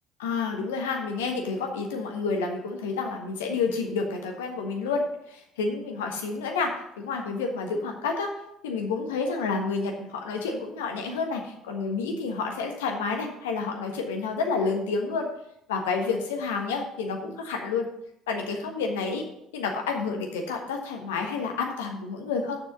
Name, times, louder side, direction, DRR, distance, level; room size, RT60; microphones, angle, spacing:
voice 1, 0.2-8.3 8.6-15.3 15.7-17.9 18.3-19.2 19.5-22.6, left 4 dB, 75° left, 3 dB, 1.4 m, -29 dB
7.2 x 6.1 x 6.8 m, 0.77 s
figure-of-eight pair, 60°, 0 cm